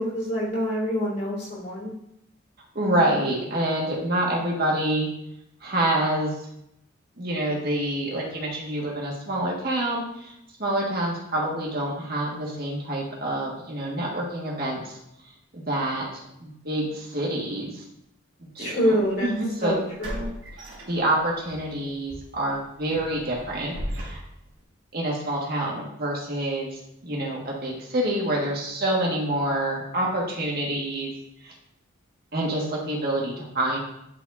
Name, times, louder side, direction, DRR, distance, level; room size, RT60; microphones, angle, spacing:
voice 1, 0.0-1.9 18.6-19.3 19.6-20.3, equal, 50° left, -5 dB, 2.8 m, -26 dB
voice 2, 2.8-5.1 5.6-6.3 7.2-10.3 10.6-15.0 15.5-17.8 18.4-19.7 20.9-24.2 24.9-31.1 31.4-31.5 32.3-33.8, right 1 dB, 45° right, -3 dB, 1.8 m, -27 dB
sound 1, 18.9-19.0 20.0-21.5 21.9-22.1 22.5-24.6, equal, 65° right, 2.7 m, -37 dB
11.5 x 4.5 x 2.7 m, 0.79 s
head